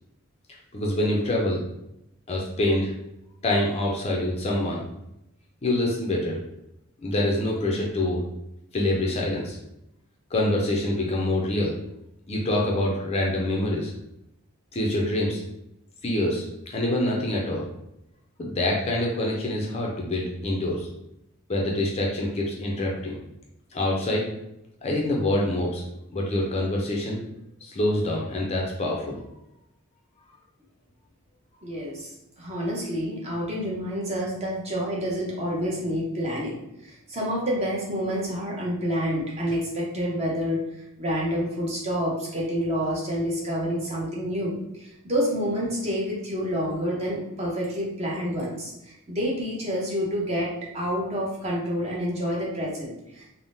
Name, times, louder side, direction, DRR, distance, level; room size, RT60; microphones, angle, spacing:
voice 1, 0.7-1.6 2.3-2.9 3.4-4.8 5.6-6.4 7.0-8.2 8.7-9.6 10.3-11.8 12.3-13.9 14.7-15.4 16.0-16.5 16.7-17.6 18.4-20.9 21.5-23.2 23.7-24.3 24.8-25.8 26.1-27.2 27.6-29.2, left 1 dB, 30° left, -2 dB, 0.4 m, -25 dB
voice 2, 31.6-32.1 32.4-40.6 41.0-53.3, equal, 30° right, -4 dB, 0.7 m, -28 dB
3.5 x 2.1 x 2.6 m, 0.85 s
head